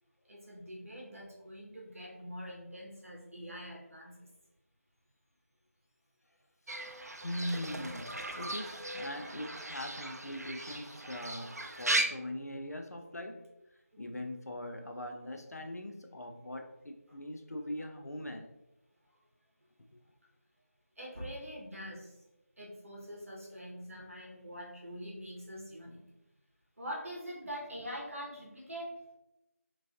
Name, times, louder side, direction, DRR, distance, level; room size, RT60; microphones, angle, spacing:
voice 1, 0.3-4.3 13.9-14.1 21.0-22.2 22.6-26.0 26.8-29.0, equal, 60° right, 1.0 m, -44 dB
Fowl / Bird, 6.7-12.0, right 2 dB, 85° right, 0.4 m, -37 dB
voice 2, 7.2-13.5 14.0-18.5 19.9-20.0, left 1 dB, 80° left, 0.5 m, -41 dB
3.0 x 2.5 x 2.5 m
figure-of-eight pair, 170°, 8 cm